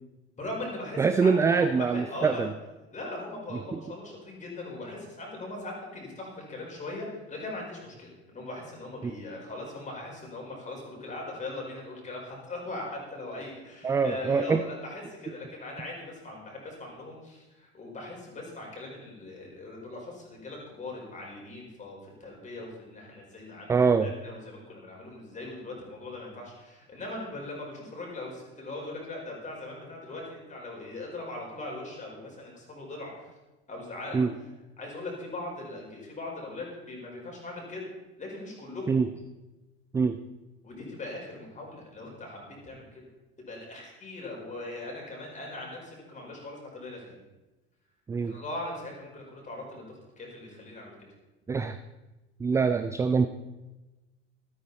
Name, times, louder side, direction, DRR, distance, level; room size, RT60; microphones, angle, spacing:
voice 1, 0.4-2.5 2.9-33.3 33.7-34.3 34.8-37.8 38.2-39.0 40.6-43.1 43.4-47.1 48.2-51.1, left 2 dB, 20° left, -2 dB, 4.9 m, -40 dB
voice 2, 1.0-2.5 3.7-3.8 13.8-14.6 23.7-24.1 34.1-34.3 38.9-39.1 39.9-40.2 48.1-48.4 51.5-51.8 52.4-53.3, right 5 dB, 10° right, 10 dB, 0.4 m, -24 dB
13.5 x 13.0 x 4.2 m, 1.1 s
figure-of-eight pair, 75°, 34 cm